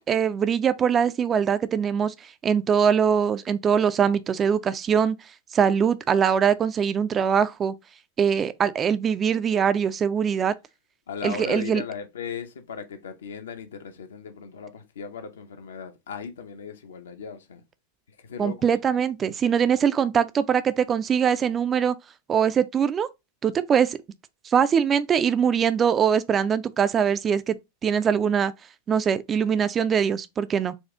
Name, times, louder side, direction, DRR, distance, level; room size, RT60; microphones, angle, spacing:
voice 1, 0.0-5.2 5.5-7.7 8.2-10.5 11.2-11.8 18.4-22.0 22.3-23.1 23.4-24.0 24.4-27.6 27.8-28.5 28.9-30.7, right 7 dB, 25° right, 0.3 m, -22 dB
voice 2, 11.1-17.6 18.1-18.7, left 6 dB, 65° left, 0.7 m, -37 dB
4.4 x 2.4 x 3.6 m
figure-of-eight pair, 90°, 0 cm